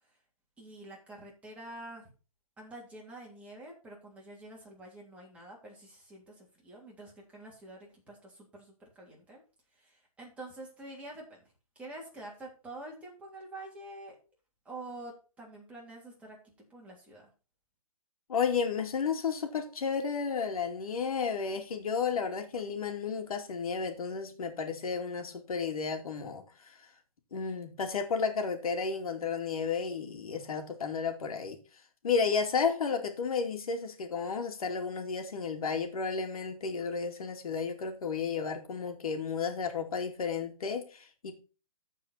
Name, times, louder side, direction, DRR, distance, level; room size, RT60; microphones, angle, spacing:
voice 1, 0.6-2.0 2.6-9.4 9.8-11.4 11.7-14.2 14.6-17.3, right 2 dB, 5° right, 3.2 m, -47 dB
voice 2, 18.3-26.8 27.3-31.6 32.0-41.3, left 5 dB, 70° left, 2.6 m, -32 dB
14.0 x 4.8 x 4.2 m
hypercardioid pair, 155°, 19 cm